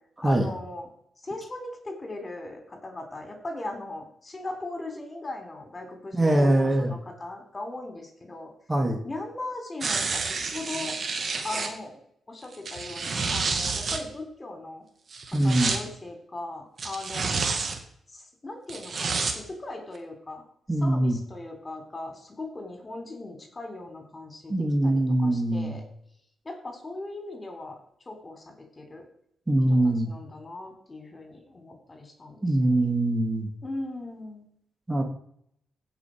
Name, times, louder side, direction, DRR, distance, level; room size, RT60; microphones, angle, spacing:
voice 1, 0.2-0.9 1.2-8.5 9.0-11.0 11.4-12.0 12.3-14.8 15.3-17.5 18.1-20.4 20.8-25.8 26.4-27.8 28.0-29.1 29.7-32.9 33.6-34.5, left 2 dB, 30° left, 4 dB, 3.4 m, -39 dB
voice 2, 6.1-6.9 8.7-9.0 15.3-15.7 20.7-21.2 24.5-25.8 29.5-30.1 32.4-33.5 34.9-35.0, right 1 dB, 20° right, 3 dB, 2.3 m, -23 dB
sound 1, 9.8-11.7 12.5-14.0 15.1-15.8 16.8-17.8 18.7-19.3 19.9-20.0, right 4 dB, 50° right, 1.7 m, -29 dB
16.0 x 5.4 x 5.2 m, 0.70 s
supercardioid pair, 50°, 0 cm